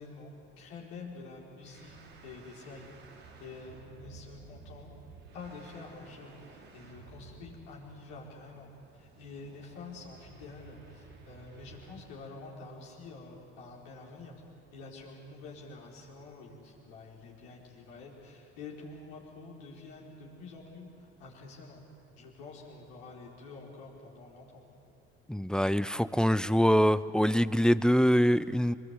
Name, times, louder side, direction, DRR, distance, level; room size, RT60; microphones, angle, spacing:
voice 1, 0.0-2.9 3.4-4.9 5.3-14.4 14.7-21.8 22.2-24.6, left 3 dB, 80° left, -3 dB, 4.4 m, -48 dB
sound 1, 1.6-12.1, right 4 dB, 85° right, 2.8 m, -54 dB
voice 2, 25.3-28.8, equal, ahead, 16 dB, 0.6 m, -24 dB
23.5 x 21.5 x 8.2 m, 2.5 s
hypercardioid pair, 55°, 31 cm